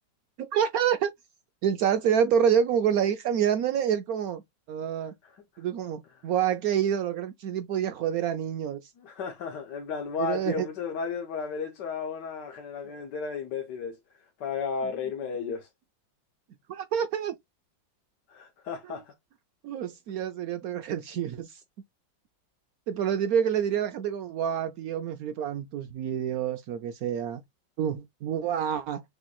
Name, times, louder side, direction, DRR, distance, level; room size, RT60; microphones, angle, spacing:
voice 1, 0.4-1.1 1.6-4.4 4.7-5.1 5.6-8.8 10.2-10.7 12.8-12.9 16.7-17.4 19.6-21.6 22.9-27.4 27.8-29.0, right 8 dB, 85° right, 0.8 m, -27 dB
voice 2, 5.0-5.6 6.2-6.3 9.0-15.7 18.3-19.1, left 6 dB, 65° left, 1.5 m, -34 dB
6.6 x 3.0 x 2.2 m
omnidirectional pair, 2.1 m